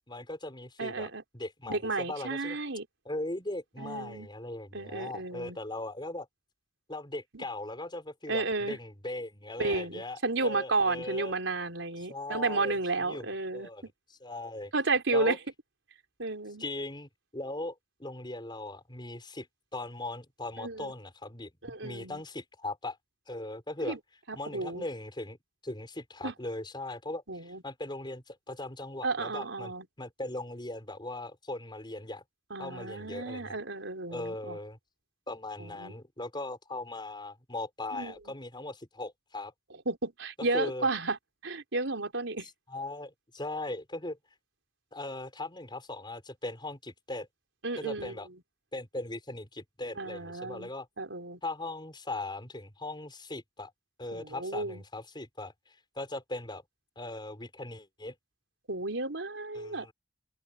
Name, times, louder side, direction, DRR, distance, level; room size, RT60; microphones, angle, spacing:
voice 1, 0.0-1.1 1.3-2.6 3.0-6.3 6.9-11.4 12.1-13.3 13.5-13.8 14.2-14.7 15.1-15.4 16.6-19.5 19.7-23.0 23.3-24.0 24.3-25.4 25.6-32.2 32.6-33.6 34.1-34.8 35.3-39.5 40.5-40.9 42.7-44.2 44.9-47.3 47.8-48.3 48.7-50.9 51.4-53.7 54.0-56.6 56.9-58.1 59.5-59.9, left 2 dB, 25° left, 5.1 m, -39 dB
voice 2, 0.8-1.2 1.7-2.9 3.8-4.3 4.7-5.6 7.3-7.5 8.3-8.8 9.6-13.9 14.7-15.4 16.2-16.6 20.6-20.9 21.6-22.2 23.8-24.0 24.3-24.9 26.2-26.3 27.3-27.6 29.0-29.9 32.5-34.6 35.6-35.9 37.9-38.1 39.9-41.2 41.4-42.5 47.6-48.2 50.0-50.7 51.0-51.4 54.1-54.8 58.7-59.9, right 3 dB, 85° right, 4.1 m, -32 dB
open air
head